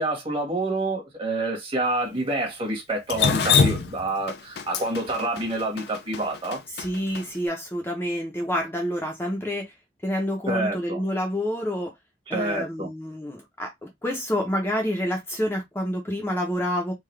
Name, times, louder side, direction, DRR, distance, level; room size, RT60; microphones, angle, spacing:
voice 1, 0.0-6.6 10.5-11.0 12.3-12.9, right 2 dB, 30° right, 1.5 m, -27 dB
Drip, 3.1-7.2, left 6 dB, 70° left, 0.5 m, -24 dB
voice 2, 6.7-9.7 10.0-11.9 12.3-16.9, equal, 15° left, 0.7 m, -28 dB
3.9 x 2.4 x 3.2 m
head